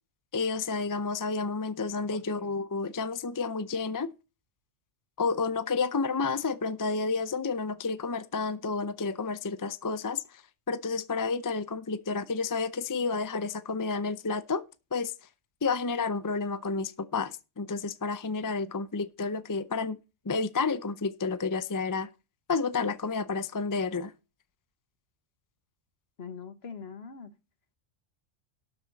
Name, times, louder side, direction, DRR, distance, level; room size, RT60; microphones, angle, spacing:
voice 1, 0.3-4.1 5.2-10.4 10.7-14.6 14.9-15.1 15.6-20.0 20.3-22.1 22.5-24.1, left 4 dB, 30° left, 0.3 m, -30 dB
voice 2, 2.1-2.5 26.2-27.3, left 6 dB, 55° left, 1.5 m, -43 dB
12.5 x 8.4 x 4.0 m
omnidirectional pair, 1.3 m